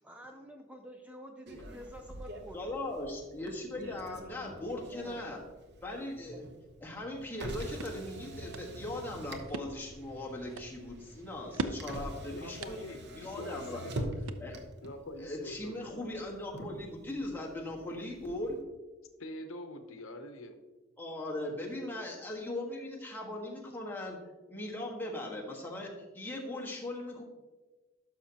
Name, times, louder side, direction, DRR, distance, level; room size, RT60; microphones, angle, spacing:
voice 1, 0.0-3.0 4.8-5.2 6.3-6.7, equal, 5° right, 3 dB, 0.5 m, -49 dB
Motor vehicle (road), 1.5-18.6, right 1 dB, 55° right, 0.9 m, -45 dB
voice 2, 2.5-5.4 5.8-6.4 6.8-12.8 13.1-13.9 14.4-14.5 15.2-18.6 21.0-24.2 24.5-27.2, left 1 dB, 10° left, -3 dB, 1.4 m, -39 dB
sound 1, 7.4-14.9, right 3 dB, 80° right, 0.5 m, -44 dB
voice 3, 12.3-13.0 13.4-14.1 14.8-15.8 19.2-20.6, left 1 dB, 70° left, 7 dB, 0.8 m, -44 dB
11.5 x 5.8 x 2.8 m, 1.2 s
head